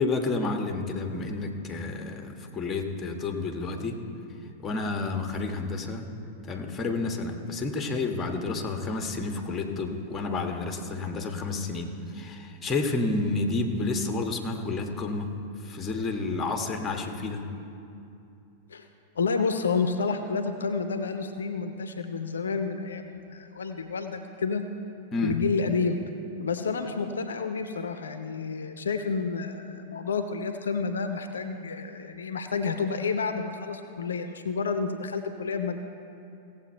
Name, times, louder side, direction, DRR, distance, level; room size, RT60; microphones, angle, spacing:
voice 1, 0.0-4.0 4.6-6.1 6.5-17.5 25.1-25.4, left 3 dB, 20° left, 4 dB, 1.2 m, -30 dB
voice 2, 19.1-24.7 25.2-26.0 26.4-35.8, left 5 dB, 75° left, 8 dB, 0.6 m, -30 dB
17.0 x 7.6 x 4.4 m, 2.7 s
figure-of-eight pair, 95°, 0 cm